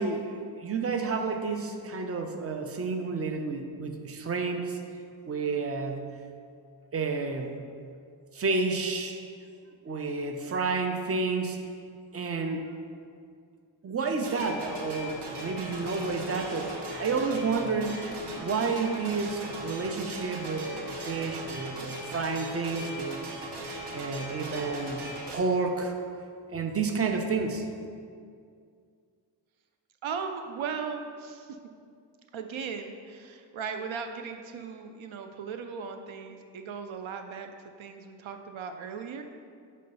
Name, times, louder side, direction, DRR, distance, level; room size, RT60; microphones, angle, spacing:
voice 1, 0.0-4.8 5.2-6.2 6.9-7.6 8.3-9.2 9.8-11.6 12.1-12.7 13.8-23.5 23.9-26.0 26.5-27.7, right 4 dB, 30° right, 5 dB, 0.6 m, -30 dB
sound 1, 14.2-25.4, right 1 dB, 60° right, 1.0 m, -38 dB
voice 2, 30.0-31.6 32.3-37.5 37.8-39.2, right 6 dB, 85° right, 6 dB, 0.5 m, -37 dB
6.6 x 3.2 x 5.4 m, 2.3 s
cardioid pair, 70°, 46 cm